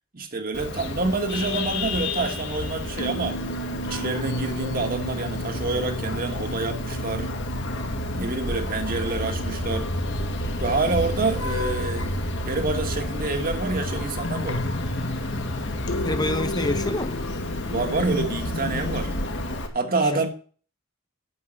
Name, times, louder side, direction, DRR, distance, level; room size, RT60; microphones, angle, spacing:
voice 1, 0.1-3.4 3.8-7.3 8.2-9.9 10.6-12.2 12.4-14.6 17.7-19.1 19.7-20.3, right 3 dB, 45° right, 1.7 m, -27 dB
Vehicle horn car horn honking, 0.5-19.7, left 1 dB, 60° left, 2.2 m, -30 dB
sound 1, 3.0-19.3, left 1 dB, 80° left, 1.0 m, -34 dB
voice 2, 16.0-17.3 20.0-20.3, left 1 dB, 20° left, 0.7 m, -28 dB
9.6 x 7.7 x 7.7 m
head